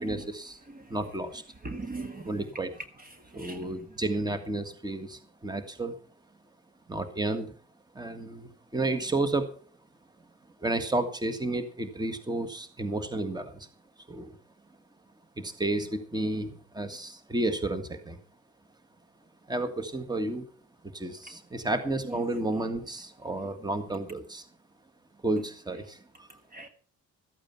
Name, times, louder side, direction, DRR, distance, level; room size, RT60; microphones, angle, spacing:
voice 1, 0.0-0.6 0.9-1.4 2.3-2.7 3.3-6.0 6.9-7.5 7.9-9.5 10.6-13.7 14.1-14.4 15.4-18.2 19.5-20.4 20.8-24.4 25.2-26.3, right 2 dB, 15° right, 1.7 m, -31 dB
voice 2, 0.7-1.1 1.6-2.5 3.0-3.7 22.0-22.2 26.5-26.7, right 3 dB, 30° right, 1.6 m, -40 dB
14.0 x 8.8 x 5.9 m
cardioid pair, 90°, 30 cm